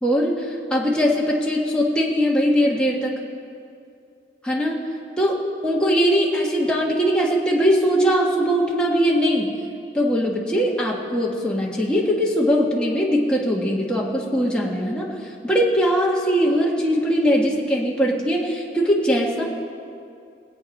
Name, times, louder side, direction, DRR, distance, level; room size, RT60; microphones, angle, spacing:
voice 1, 0.0-3.2 4.4-4.8 5.2-9.5 9.9-15.1 15.4-19.4, equal, 5° left, -4 dB, 1.5 m, -21 dB
20.5 x 8.6 x 5.3 m, 2.5 s
head